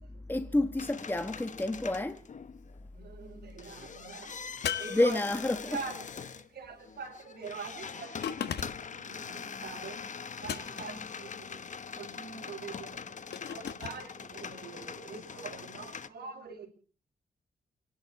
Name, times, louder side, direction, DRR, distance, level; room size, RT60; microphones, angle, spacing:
voice 1, 0.3-2.2 4.9-5.8, left 1 dB, 10° left, 1.2 m, -29 dB
sound 1, 0.8-2.8 3.3-16.1, left 6 dB, 50° left, 1.0 m, -43 dB
voice 2, 2.9-5.2 5.7-10.2 10.4-16.7, right 5 dB, 75° right, 5.2 m, -44 dB
sound 2, 4.6-5.7 8.2-9.0 10.4-11.0 13.3-14.0, left 8 dB, 85° left, 1.4 m, -37 dB
29.5 x 11.5 x 4.1 m
cardioid pair, 105°, 17 cm